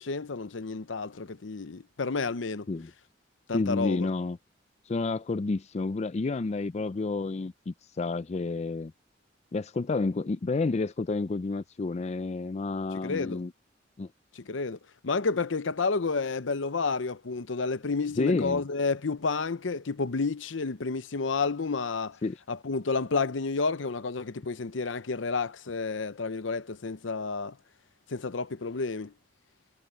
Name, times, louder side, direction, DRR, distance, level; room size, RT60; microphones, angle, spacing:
voice 1, 0.0-2.7 3.5-4.1 13.0-13.4 14.3-14.8 15.0-22.2 22.5-27.6 28.1-29.1, left 4 dB, 80° left, 0.8 m, -30 dB
voice 2, 3.5-4.4 4.9-8.9 9.5-13.5 14.0-14.1 18.2-18.6 22.2-22.4, left 3 dB, 35° left, 0.4 m, -30 dB
head